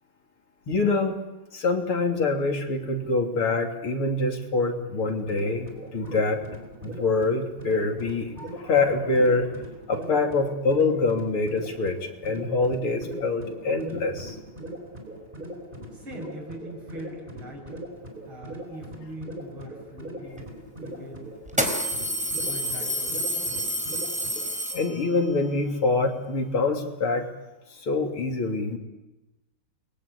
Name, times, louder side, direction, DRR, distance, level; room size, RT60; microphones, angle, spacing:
voice 1, 0.7-1.2 1.5-6.4 6.8-9.5 9.9-14.4 24.7-27.3 27.7-28.8, left 3 dB, 85° left, 3 dB, 3.9 m, -25 dB
sound 1, 5.0-24.5, right 1 dB, 20° right, 4.6 m, -40 dB
voice 2, 15.9-17.8 18.3-20.5 20.8-21.3 22.4-23.6, right 1 dB, 75° right, 1 dB, 8.6 m, -42 dB
sound 2, 20.4-20.5 21.5-25.3, equal, 5° right, 3.9 m, -29 dB
29.5 x 22.5 x 8.4 m, 1.0 s
omnidirectional pair, 2.3 m